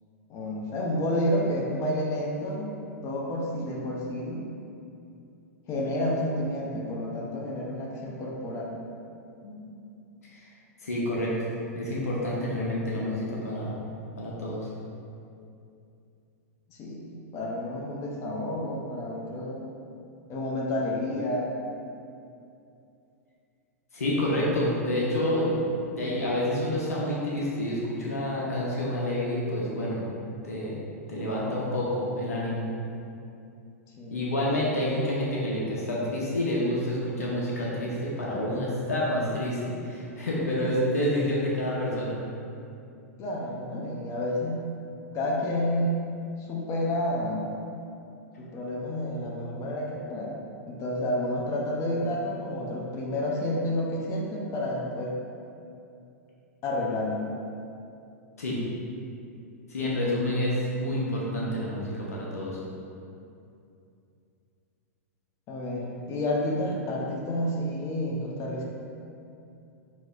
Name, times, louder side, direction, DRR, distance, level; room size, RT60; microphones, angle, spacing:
voice 1, 0.3-2.7 3.0-4.5 5.7-8.8 9.4-9.7 16.7-19.6 20.3-21.5 34.0-34.3 43.2-44.7 45.1-46.1 46.4-47.5 48.4-50.4 50.7-55.2 56.6-57.3 65.5-68.6, left 1 dB, 35° left, -2 dB, 0.7 m, -30 dB
voice 2, 10.8-11.3 11.8-13.8 14.2-14.7 23.9-25.7 26.0-30.1 30.4-30.7 31.1-32.7 34.1-42.2 58.4-58.6 59.7-62.6, left 1 dB, 80° left, -5 dB, 0.9 m, -28 dB
6.1 x 3.0 x 2.5 m, 2.6 s
hypercardioid pair, 105°, 8 cm